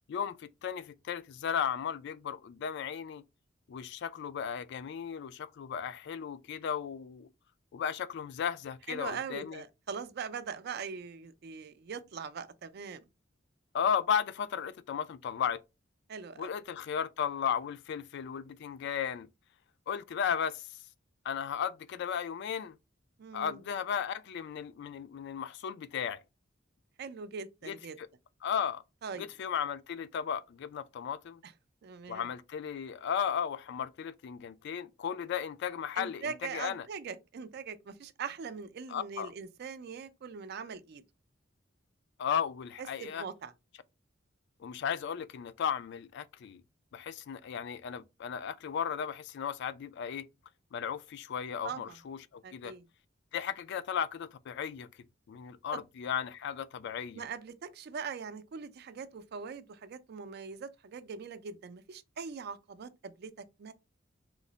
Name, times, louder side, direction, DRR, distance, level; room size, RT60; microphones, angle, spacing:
voice 1, 0.1-3.2 3.7-7.3 7.7-9.6 13.7-15.6 16.4-19.3 19.9-20.6 21.2-22.8 23.3-26.2 27.7-28.1 28.4-28.8 29.2-31.4 32.1-36.9 38.9-39.3 42.2-43.2 44.6-46.6 46.9-50.3 50.7-52.8 53.3-54.9 55.3-57.2, left 8 dB, 60° left, 0.3 m, -35 dB
voice 2, 8.9-13.0 16.1-16.5 23.2-23.6 27.0-28.0 29.0-29.3 31.4-31.5 31.8-32.3 36.0-41.0 43.0-43.5 51.6-52.0 52.4-52.8 55.7-55.8 57.1-63.3 63.6-63.7, right 6 dB, 55° right, 0.4 m, -41 dB
3.1 x 2.0 x 3.8 m
head